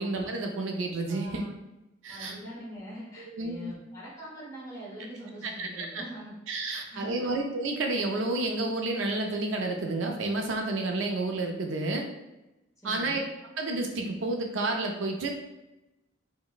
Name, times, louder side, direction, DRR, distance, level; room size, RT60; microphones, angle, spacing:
voice 1, 0.0-1.4 2.0-2.3 3.3-3.7 5.4-5.9 6.5-12.1 12.8-13.2 13.6-15.3, right 2 dB, 70° right, 2 dB, 0.4 m, -30 dB
voice 2, 1.1-1.5 2.1-6.3 6.7-7.3 12.8-13.3, right 1 dB, 20° left, -8 dB, 1.1 m, -43 dB
3.9 x 2.0 x 2.4 m, 0.96 s
head